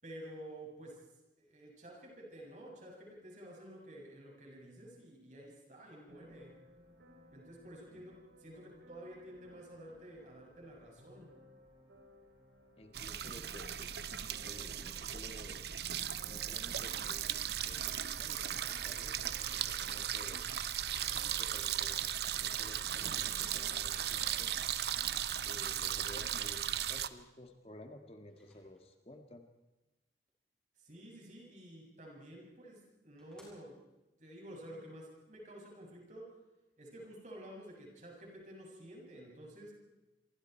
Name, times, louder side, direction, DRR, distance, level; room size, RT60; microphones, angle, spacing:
voice 1, 0.0-1.0 1.4-6.6 7.3-11.3 30.8-33.8 34.2-36.4 36.8-39.7, right 1 dB, 40° right, -1 dB, 7.1 m, -51 dB
sound 1, 6.1-25.7, left 1 dB, 85° right, 3.8 m, -61 dB
voice 2, 12.8-13.7 14.4-15.6 16.2-17.3 17.7-20.4 21.1-22.0 22.4-24.5 25.4-29.5, left 1 dB, 35° left, 5 dB, 1.9 m, -53 dB
sound 2, 12.9-27.1, right 10 dB, 65° right, 0.9 m, -37 dB
Microwave oven, 16.2-17.1 21.5-21.6 22.3-23.7 28.3-29.2 32.3-32.4 32.8-32.9 33.2-34.1, left 1 dB, 5° left, 7.1 m, -65 dB
27.5 x 23.5 x 4.6 m, 1.0 s
head